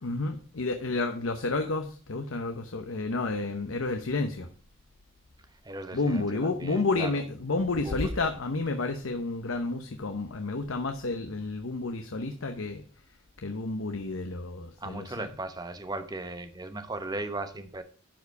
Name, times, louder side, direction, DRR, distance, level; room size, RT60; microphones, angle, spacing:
voice 1, 0.0-4.5 5.9-12.8 13.4-15.3, left 3 dB, 90° left, 6 dB, 0.9 m, -30 dB
voice 2, 5.5-7.2 7.8-8.2 14.8-17.8, right 2 dB, 20° right, 9 dB, 0.9 m, -37 dB
11.5 x 4.9 x 4.6 m, 0.43 s
head